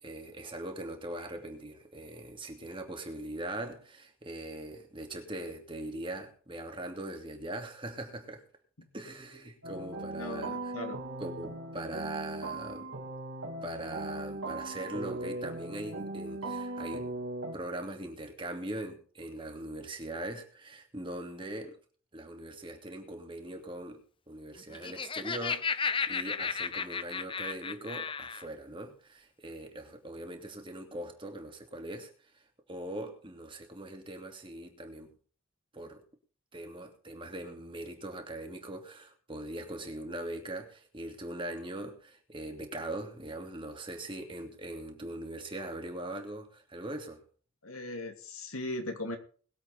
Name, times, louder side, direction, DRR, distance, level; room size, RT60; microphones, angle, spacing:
voice 1, 0.0-8.5 8.9-10.7 11.2-12.9 13.6-17.1 17.5-21.8 22.1-24.0 24.3-32.4 32.7-35.1 35.7-36.0 36.5-47.2, right 1 dB, 25° right, 2.7 m, -41 dB
sound 1, 9.6-17.6, right 2 dB, 75° right, 2.9 m, -39 dB
voice 2, 10.2-11.0 47.6-49.2, left 1 dB, 80° left, 2.7 m, -38 dB
Laughter, 24.6-28.5, left 5 dB, 25° left, 0.6 m, -34 dB
21.5 x 8.2 x 4.2 m
head